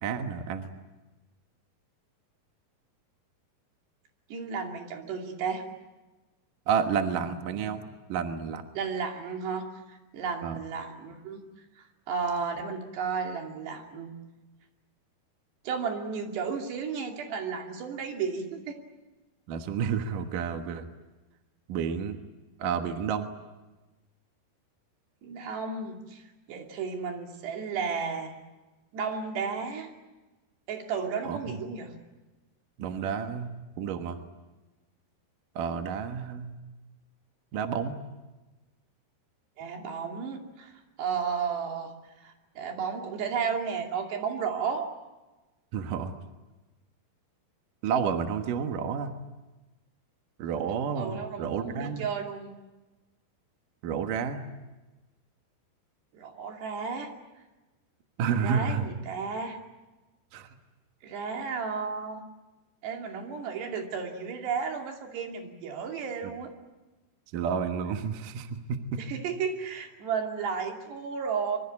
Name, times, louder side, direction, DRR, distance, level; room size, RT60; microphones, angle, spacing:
voice 1, 0.0-0.7 6.7-7.8 8.1-8.7 10.4-10.6 19.5-20.9 21.7-22.2 22.6-23.3 31.2-31.6 32.8-33.5 33.8-34.2 35.6-36.5 37.5-38.0 45.7-46.2 47.8-49.1 50.4-52.1 53.8-54.5 58.2-58.8 60.3-60.5 67.3-69.0, right 7 dB, 60° right, 6 dB, 2.6 m, -30 dB
voice 2, 4.3-5.6 8.7-11.4 11.8-14.1 15.6-18.8 25.2-26.2 26.5-28.3 28.9-29.9 30.7-31.9 39.6-40.7 41.0-41.9 42.2-44.9 51.0-52.5 56.1-57.1 58.4-59.6 61.0-62.2 62.8-66.5 69.0-71.6, right 6 dB, 80° right, 2 dB, 4.8 m, -33 dB
25.5 x 24.0 x 8.6 m, 1.1 s
omnidirectional pair, 4.8 m